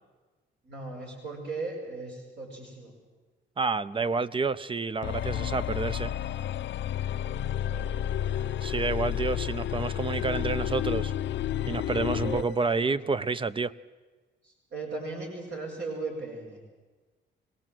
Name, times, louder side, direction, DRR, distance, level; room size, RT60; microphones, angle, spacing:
voice 1, 0.6-2.9 7.6-7.9 12.2-13.2 14.4-16.6, right 3 dB, 60° right, -1 dB, 5.8 m, -38 dB
voice 2, 3.6-6.1 8.6-11.1 11.7-13.7, right 4 dB, 25° right, 16 dB, 0.7 m, -29 dB
sound 1, 5.0-12.5, left 11 dB, 65° left, 0.7 m, -31 dB
23.5 x 18.0 x 7.7 m, 1.3 s
cardioid pair, 90°, 20 cm